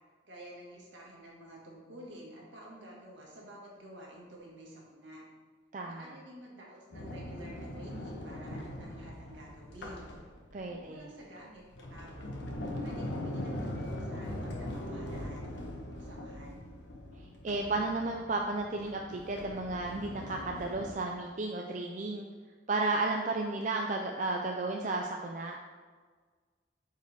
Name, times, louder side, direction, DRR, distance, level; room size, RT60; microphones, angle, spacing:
voice 1, 0.2-5.3 5.8-10.1 10.7-11.6 11.9-12.4 12.8-15.5 15.9-16.7, equal, 70° right, -3 dB, 1.9 m, -50 dB
voice 2, 5.7-6.2 10.5-11.1 17.4-22.2 22.7-25.6, right 3 dB, 40° right, 2 dB, 0.4 m, -33 dB
Sliding door, 6.9-10.7 11.4-20.9, left 1 dB, 65° left, 1.1 m, -41 dB
8.9 x 4.7 x 3.5 m, 1.5 s
head